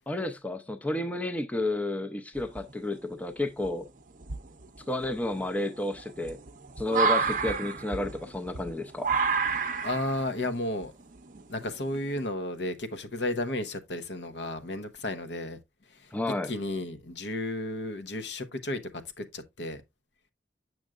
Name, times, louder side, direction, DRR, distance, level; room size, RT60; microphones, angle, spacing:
voice 1, 0.1-3.9 4.9-6.4 6.8-9.1 16.1-16.5, left 2 dB, 10° left, 0.5 m, -31 dB
sound 1, 2.4-3.0 3.6-3.7 4.2-12.2, right 5 dB, 45° right, 0.6 m, -31 dB
voice 2, 9.8-10.9 11.5-15.6 15.9-16.1 16.5-18.8 19.2-19.8, left 1 dB, 70° left, 0.9 m, -33 dB
7.6 x 6.2 x 2.4 m
head